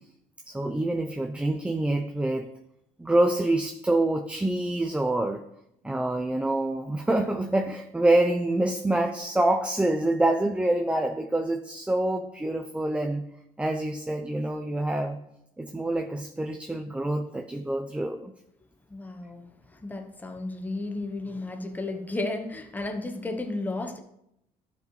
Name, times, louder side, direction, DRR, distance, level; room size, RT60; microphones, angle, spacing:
voice 1, 0.5-2.5 3.0-5.4 5.8-13.3 13.6-15.2 15.6-18.3, right 1 dB, 10° right, 6 dB, 0.5 m, -26 dB
voice 2, 18.9-24.0, left 2 dB, 10° left, 5 dB, 0.8 m, -33 dB
11.5 x 5.1 x 3.2 m, 0.81 s
cardioid pair, 100°, 15 cm